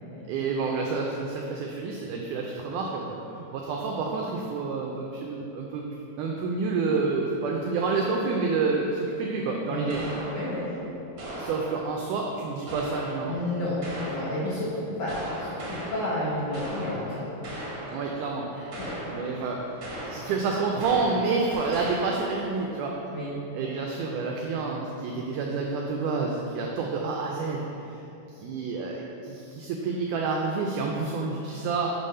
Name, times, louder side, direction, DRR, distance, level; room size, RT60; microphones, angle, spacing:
voice 1, 0.3-5.8 6.2-10.0 11.4-13.4 17.9-18.5 19.1-19.6 20.0-22.9 23.5-28.1 28.4-31.9, right 4 dB, 85° right, 0 dB, 1.7 m, -29 dB
voice 2, 9.7-10.0 10.3-10.7 13.3-17.3 17.8-18.0 18.5-19.0 22.8-23.7, left 1 dB, 75° left, -8 dB, 1.5 m, -32 dB
sound 1, 9.9-12.0 12.7-14.6 15.1-18.2 18.7-19.5 19.8-22.5, right 1 dB, 70° right, 1.1 m, -38 dB
6.8 x 3.2 x 5.4 m, 2.9 s
omnidirectional pair, 4.1 m